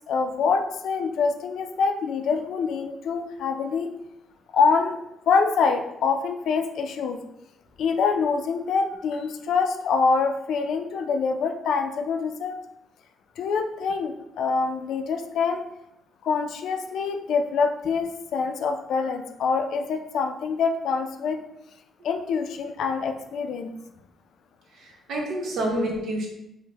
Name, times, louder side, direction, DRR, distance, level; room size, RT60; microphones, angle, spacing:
voice 1, 0.1-3.9 4.5-7.2 7.8-12.6 13.4-15.6 16.2-21.4 22.0-23.7, left 5 dB, 75° left, 6 dB, 0.3 m, -25 dB
voice 2, 24.7-26.3, right 1 dB, 70° right, 0 dB, 0.8 m, -28 dB
3.3 x 2.1 x 3.2 m, 0.84 s
cardioid pair, 90°, 0 cm